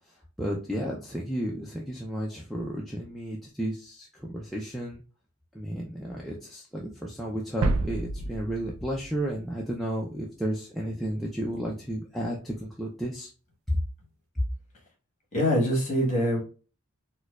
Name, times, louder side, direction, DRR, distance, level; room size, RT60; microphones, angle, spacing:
voice 1, 0.4-5.0 5.5-13.3, right 1 dB, ahead, 0.3 m, -33 dB
sound 1, 7.6-10.1, right 3 dB, 70° right, 0.4 m, -30 dB
voice 2, 15.3-16.4, equal, 30° left, 1.2 m, -24 dB
4.4 x 2.2 x 2.3 m
head